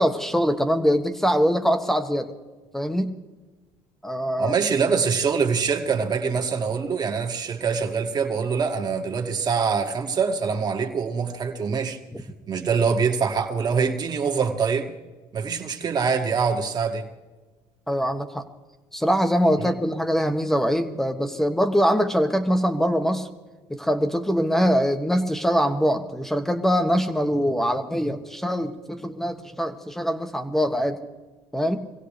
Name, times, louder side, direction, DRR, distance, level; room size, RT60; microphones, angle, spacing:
voice 1, 0.0-2.3 2.7-3.2 4.0-4.6 17.9-18.4 18.9-23.3 23.7-31.0 31.5-31.9, equal, 5° left, 1.3 m, -23 dB
voice 2, 4.4-12.0 12.5-15.0 15.3-17.1 19.6-19.7, right 5 dB, 35° right, 1.9 m, -24 dB
25.0 x 16.5 x 3.4 m
cardioid pair, 100°, 11 cm